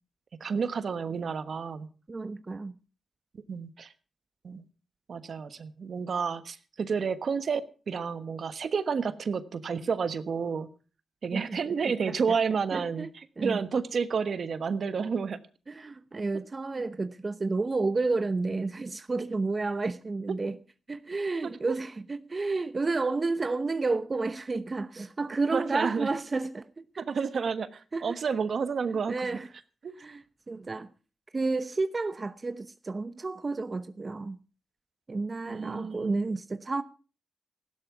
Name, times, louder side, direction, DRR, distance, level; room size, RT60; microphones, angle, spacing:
voice 1, 0.4-1.9 3.5-3.9 4.4-4.6 5.1-10.7 11.2-15.4 21.7-21.8 25.5-26.1 27.0-29.4 29.8-30.0 35.5-36.4, right 5 dB, 65° right, 1.3 m, -30 dB
voice 2, 2.1-2.7 11.3-11.6 12.1-12.4 12.7-13.6 15.7-20.6 20.9-26.8 27.9-28.2 29.1-29.5 30.0-30.9 31.3-34.4 35.1-36.8, right 3 dB, 35° right, 0.9 m, -31 dB
15.5 x 12.0 x 5.9 m
cardioid pair, 75°, 0 cm